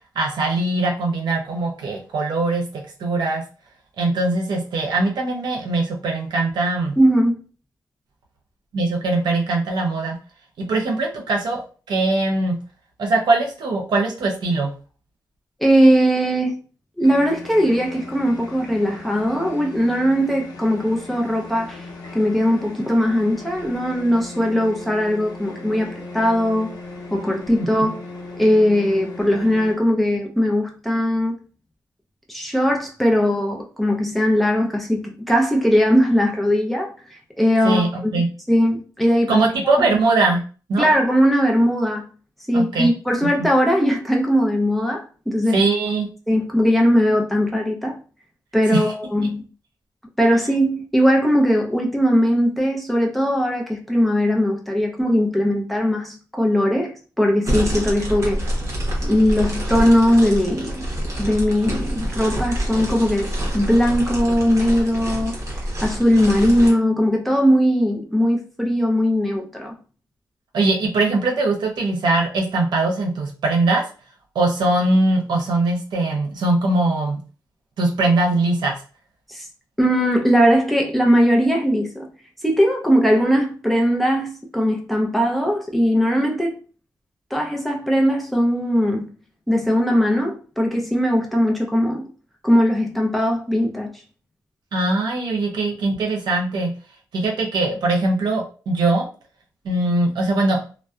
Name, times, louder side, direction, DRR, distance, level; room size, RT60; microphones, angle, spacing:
voice 1, 0.1-3.4 4.0-7.0 8.7-10.2 10.6-11.6 11.9-12.6 13.0-14.7 27.8-27.9 37.6-38.3 39.3-40.4 40.7-40.9 42.5-42.9 43.4-43.5 45.5-46.1 48.7-48.8 70.5-73.8 74.3-77.2 77.8-78.7 94.7-96.7 97.1-99.1 99.6-100.6, right 2 dB, 85° right, 0.7 m, -21 dB
voice 2, 7.0-7.4 15.6-16.6 17.0-21.9 22.1-26.7 27.1-28.0 28.4-31.4 32.3-36.9 37.4-40.0 40.8-42.1 42.5-45.6 46.3-48.0 48.5-49.4 50.2-58.4 59.0-60.8 61.2-65.4 65.8-69.7 79.3-79.4 79.8-82.1 82.4-86.5 87.3-89.1 89.5-92.1 92.4-94.0, equal, ahead, 0.5 m, -19 dB
sound 1, 17.0-29.7, left 2 dB, 85° left, 0.6 m, -38 dB
sound 2, 57.5-66.7, equal, 45° right, 0.8 m, -26 dB
2.6 x 2.1 x 2.3 m
wide cardioid pair, 125°, 7 cm